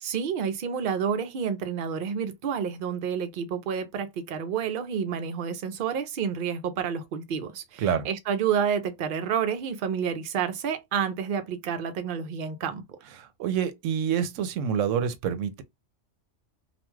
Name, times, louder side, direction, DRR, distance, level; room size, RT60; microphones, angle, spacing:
voice 1, 0.0-13.0, right 7 dB, 60° right, 0.6 m, -29 dB
voice 2, 13.2-15.6, right 8 dB, 80° right, 0.9 m, -27 dB
2.4 x 2.2 x 3.0 m
omnidirectional pair, 1.3 m